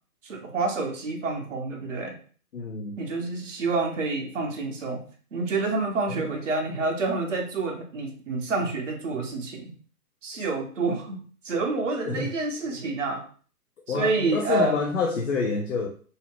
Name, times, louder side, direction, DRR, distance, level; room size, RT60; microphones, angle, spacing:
voice 1, 0.2-2.2 3.0-5.0 5.3-9.7 10.2-13.2 13.9-14.8, right 3 dB, 50° right, 2 dB, 0.7 m, -28 dB
voice 2, 2.5-3.0 6.1-6.3 12.1-12.3 13.9-15.9, left 4 dB, 55° left, 1 dB, 0.5 m, -28 dB
2.7 x 2.1 x 3.0 m, 0.42 s
figure-of-eight pair, 130°, 47 cm